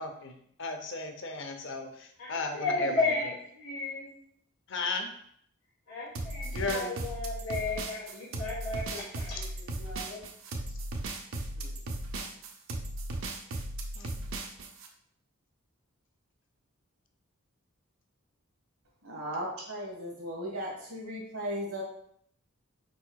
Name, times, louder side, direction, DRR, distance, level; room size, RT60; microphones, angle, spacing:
voice 1, 0.0-3.3 4.7-5.1 6.5-6.9 11.6-11.8 12.2-12.3 13.9-14.1, left 3 dB, 60° left, 6 dB, 0.6 m, -36 dB
voice 2, 2.2-4.1 5.9-10.2, left 3 dB, 85° left, -8 dB, 1.2 m, -34 dB
sound 1, 6.1-14.9, right 2 dB, 65° right, 0.5 m, -36 dB
voice 3, 19.0-21.8, equal, 85° right, -2 dB, 1.6 m, -36 dB
4.6 x 4.3 x 2.3 m, 0.67 s
head